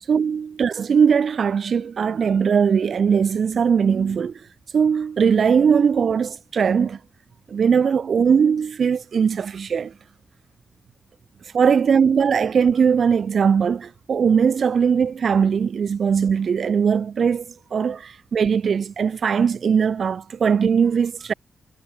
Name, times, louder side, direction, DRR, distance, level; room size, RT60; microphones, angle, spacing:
voice 1, 0.1-4.3 4.7-7.0 7.5-9.9 11.5-21.3, right 6 dB, 60° right, 0.8 m, -20 dB
wide cardioid pair, 125°, 0 cm